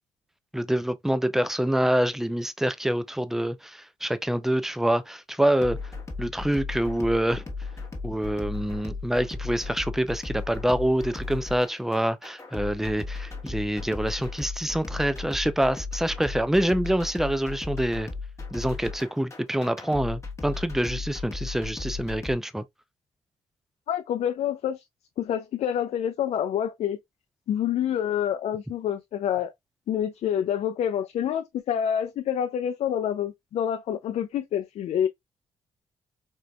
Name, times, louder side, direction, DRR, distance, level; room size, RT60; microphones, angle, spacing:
voice 1, 0.5-5.8 6.2-7.4 8.0-18.1 18.5-22.6, right 1 dB, 5° right, 0.5 m, -26 dB
sound 1, 5.6-22.4, left 4 dB, 25° left, 1.2 m, -36 dB
voice 2, 23.9-24.8 25.2-27.0 27.5-29.5 29.9-35.1, left 9 dB, 70° left, 0.4 m, -27 dB
4.5 x 2.5 x 2.2 m
cardioid pair, 75°, 11 cm